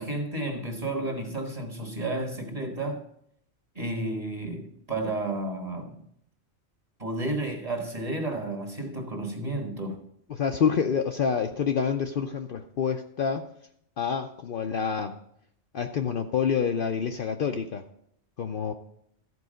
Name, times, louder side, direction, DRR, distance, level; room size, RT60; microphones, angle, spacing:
voice 1, 0.0-3.0 3.7-6.0 7.0-10.0, right 2 dB, 30° right, 1.5 m, -32 dB
voice 2, 10.3-13.5 14.0-15.2 15.7-17.8 18.4-18.7, left 6 dB, 55° left, 0.7 m, -27 dB
13.5 x 4.7 x 6.3 m
omnidirectional pair, 1.3 m